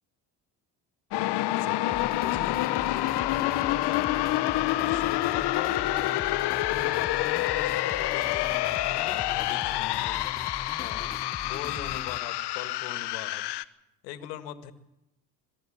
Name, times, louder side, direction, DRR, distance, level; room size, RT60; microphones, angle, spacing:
sound 1, 1.1-13.6, left 16 dB, 55° left, 1.0 m, -28 dB
voice 1, 1.5-1.8 2.2-6.2 6.7-10.3 10.8-13.4 14.0-14.7, left 12 dB, 80° left, 11 dB, 1.7 m, -40 dB
sound 2, 1.9-12.2, left 5 dB, 20° left, 1.0 m, -41 dB
23.0 x 13.5 x 8.6 m, 0.89 s
hypercardioid pair, 70°, 48 cm